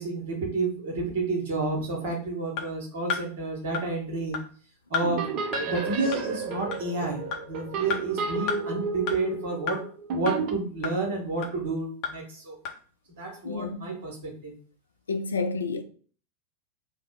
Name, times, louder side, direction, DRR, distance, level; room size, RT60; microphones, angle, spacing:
voice 1, 0.0-4.4 4.9-9.8 10.1-12.6 13.2-14.5, right 3 dB, 60° right, 1.1 m, -30 dB
golpeando madera, 2.6-2.7 3.1-3.2 3.7-3.8 4.3-4.4 4.9-5.1 5.5-5.6 6.1-6.2 6.7-6.8 7.3-7.4 7.9-8.0 8.5-8.6 9.1-9.2 9.7-9.8 10.3-10.4 10.8-10.9 11.4-11.5 12.0-12.1 12.6-12.7, left 6 dB, 45° left, 0.7 m, -30 dB
sound 1, 5.0-10.5, right 4 dB, 40° right, 0.5 m, -32 dB
voice 2, 13.4-13.9 15.1-15.8, left 4 dB, 75° left, 0.4 m, -30 dB
3.1 x 2.1 x 3.6 m
figure-of-eight pair, 90°, 0 cm